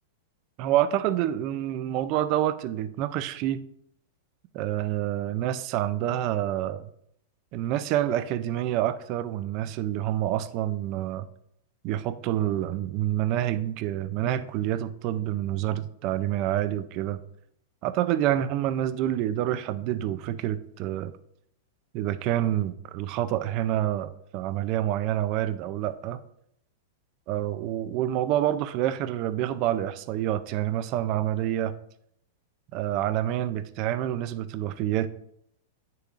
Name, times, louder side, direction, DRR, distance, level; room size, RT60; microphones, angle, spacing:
voice 1, 0.6-3.6 4.5-6.8 7.5-11.3 11.8-17.2 17.8-21.1 21.9-26.2 27.3-31.7 32.7-35.1, right 12 dB, 30° right, 13 dB, 0.4 m, -27 dB
9.5 x 6.7 x 2.5 m, 0.71 s
supercardioid pair, 175°, 0 cm